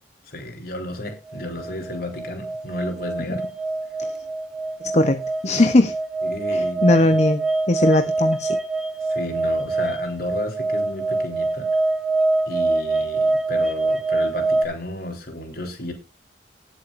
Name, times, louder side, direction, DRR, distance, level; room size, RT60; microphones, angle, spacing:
voice 1, 0.3-3.4 6.2-7.1 9.0-11.7 12.5-15.9, left 1 dB, 55° left, 2 dB, 3.9 m, -33 dB
sound 1, 1.3-14.7, right 2 dB, 5° right, 1.2 m, -24 dB
voice 2, 4.9-5.9 6.5-8.6, left 2 dB, 40° left, 8 dB, 0.9 m, -19 dB
19.5 x 7.1 x 2.6 m, 0.26 s
head